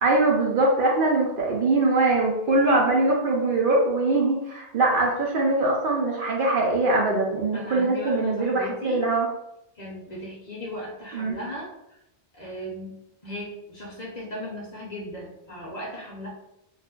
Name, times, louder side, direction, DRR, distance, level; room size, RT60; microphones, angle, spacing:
voice 1, 0.0-9.3 11.1-11.4, right 2 dB, 60° right, -1 dB, 0.6 m, -22 dB
voice 2, 7.5-9.0 9.7-12.0 12.3-13.0 13.2-16.3, equal, 45° left, -3 dB, 0.7 m, -37 dB
2.4 x 2.4 x 3.6 m, 0.86 s
omnidirectional pair, 1.2 m